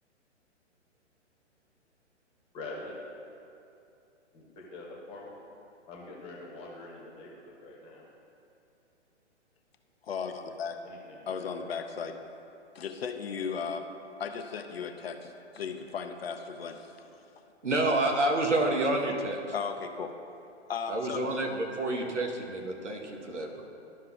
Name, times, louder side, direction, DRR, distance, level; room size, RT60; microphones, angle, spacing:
voice 1, 2.5-3.0 4.3-5.3 5.9-8.0 10.8-11.5, left 2 dB, 15° left, -2 dB, 1.0 m, -44 dB
voice 2, 10.0-10.8 11.3-12.2 12.7-13.9 14.2-17.1 19.5-20.1 20.7-21.2, left 6 dB, 55° left, 5 dB, 0.6 m, -36 dB
voice 3, 17.6-19.4 20.9-23.6, right 2 dB, 80° right, 1 dB, 1.2 m, -28 dB
12.0 x 5.6 x 2.4 m, 2.7 s
figure-of-eight pair, 125°, 36 cm